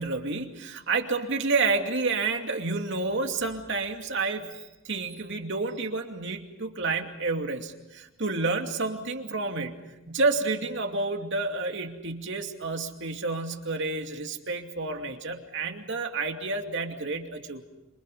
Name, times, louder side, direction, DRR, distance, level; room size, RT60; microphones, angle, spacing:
voice 1, 0.0-9.8 10.1-17.6, right 3 dB, 60° right, 4 dB, 2.6 m, -30 dB
28.0 x 27.5 x 5.5 m, 1.0 s
head